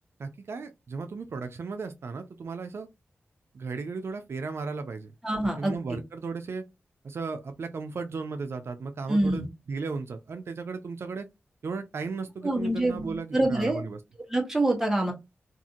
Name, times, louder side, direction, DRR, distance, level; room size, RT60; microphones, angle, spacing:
voice 1, 0.2-2.9 3.5-5.1 5.6-6.6 7.0-11.3 11.6-14.0, right 4 dB, 65° right, 0.4 m, -35 dB
voice 2, 5.2-6.0 9.1-9.5 12.4-13.8 14.3-15.1, right 1 dB, 10° right, 1.1 m, -26 dB
2.7 x 2.4 x 2.6 m
wide cardioid pair, 80°, 5 cm